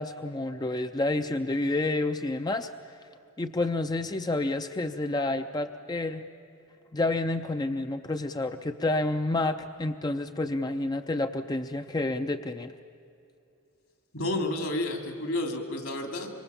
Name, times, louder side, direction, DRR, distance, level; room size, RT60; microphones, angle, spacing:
voice 1, 0.0-2.7 3.4-6.2 6.9-12.7, left 2 dB, 20° left, 8 dB, 0.5 m, -29 dB
voice 2, 14.1-16.3, left 1 dB, 70° left, 4 dB, 3.0 m, -30 dB
26.5 x 23.5 x 7.1 m, 2.7 s
head